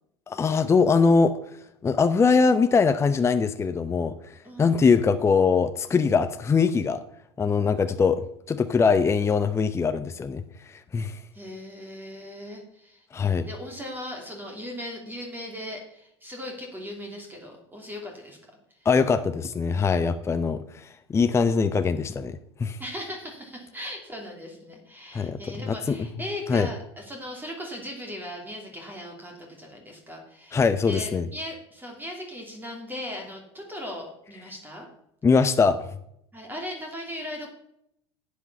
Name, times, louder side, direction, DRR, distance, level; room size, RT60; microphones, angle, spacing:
voice 1, 0.3-1.4 1.8-4.2 4.6-7.0 7.4-10.4 10.7-11.2 13.1-13.5 18.9-22.8 25.1-25.4 25.7-25.9 26.5-26.7 30.5-31.3 35.2-35.8, left 5 dB, 20° left, 9 dB, 0.6 m, -22 dB
voice 2, 4.4-4.8 11.3-18.4 18.8-18.9 22.8-34.9 36.3-37.5, left 1 dB, 15° right, 1 dB, 2.8 m, -38 dB
10.5 x 8.5 x 5.5 m, 0.77 s
hypercardioid pair, 80°, 14 cm